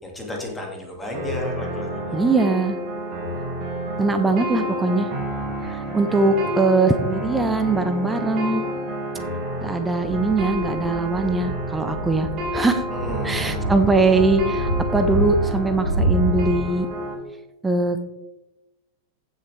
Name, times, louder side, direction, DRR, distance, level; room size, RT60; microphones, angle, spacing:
voice 1, 0.0-2.3 6.2-6.5 12.9-13.6, left 1 dB, 10° left, 0 dB, 2.4 m, -33 dB
sound 1, 1.1-17.1, equal, 35° right, 3.8 m, -30 dB
voice 2, 2.1-2.8 4.0-5.1 5.6-8.6 9.6-12.9 13.2-16.9 17.6-18.0, right 3 dB, 10° right, 7 dB, 1.1 m, -21 dB
sound 2, 10.0-16.6, right 1 dB, 85° left, 2.4 m, -27 dB
15.0 x 6.6 x 3.5 m, 0.97 s
figure-of-eight pair, 90°, 0 cm